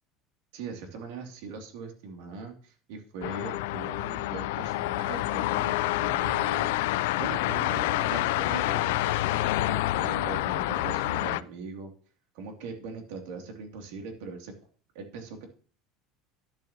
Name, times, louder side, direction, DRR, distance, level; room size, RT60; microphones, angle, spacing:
voice 1, 0.5-6.7 7.2-11.9 12.3-14.5 14.9-15.5, right 4 dB, 80° right, 3 dB, 2.8 m, -40 dB
sound 1, 3.2-11.4, left 16 dB, 90° left, 0.4 m, -28 dB
10.5 x 10.5 x 3.0 m, 0.41 s
cardioid pair, 155°, 0 cm